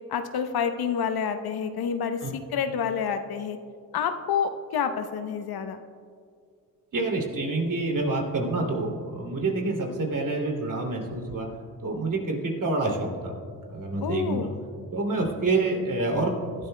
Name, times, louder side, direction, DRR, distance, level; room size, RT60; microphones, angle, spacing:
voice 1, 0.1-3.6 3.9-5.8 14.0-14.6, left 7 dB, 55° left, 8 dB, 0.9 m, -28 dB
voice 2, 6.9-11.5 11.8-13.3 13.7-14.5 14.9-16.4, right 2 dB, 45° right, 0 dB, 2.8 m, -27 dB
19.5 x 11.5 x 2.2 m, 2.2 s
supercardioid pair, 60°, 43 cm